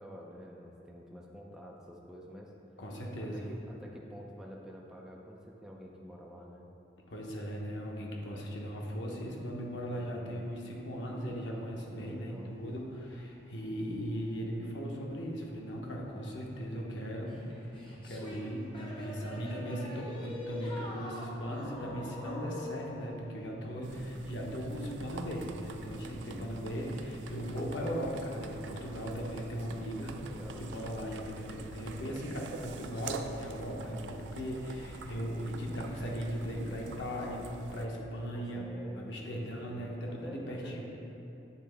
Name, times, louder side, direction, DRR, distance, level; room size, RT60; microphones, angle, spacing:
voice 1, 0.0-2.5 3.2-6.7 9.9-10.5 12.0-12.5 26.0-26.6 30.2-30.7 38.3-40.8, equal, 5° right, -3 dB, 0.4 m, -48 dB
voice 2, 2.8-3.4 7.1-17.4 17.9-30.1 30.6-37.4 37.7-38.7 39.0-40.8, equal, 90° left, -2 dB, 0.9 m, -38 dB
Engine, 10.6-29.5, right 1 dB, 55° left, 1.5 m, -63 dB
sound 1, 17.3-23.0, left 1 dB, 30° left, 0.9 m, -44 dB
sound 2, 23.8-37.9, right 3 dB, 80° right, 0.3 m, -46 dB
8.4 x 3.6 x 3.4 m, 2.8 s
head